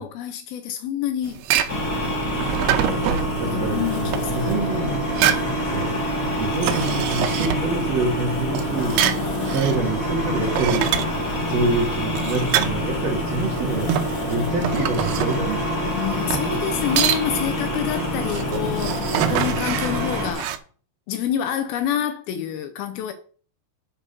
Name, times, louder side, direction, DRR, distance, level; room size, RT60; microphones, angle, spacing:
voice 1, 0.0-1.5 2.8-4.6 5.2-5.5 8.8-10.1 15.8-19.0 19.3-20.6 21.1-23.1, left 10 dB, 75° left, 2.5 m, -28 dB
sound 1, 1.2-20.6, right 11 dB, 85° right, 2.7 m, -27 dB
sound 2, 1.7-20.3, left 1 dB, 60° left, 0.8 m, -26 dB
voice 2, 3.4-5.0 5.7-6.0 6.4-9.1 9.4-10.9 11.5-13.9 14.3-15.6 18.8-19.5, right 3 dB, 50° right, 2.2 m, -26 dB
7.4 x 6.0 x 5.3 m
omnidirectional pair, 4.7 m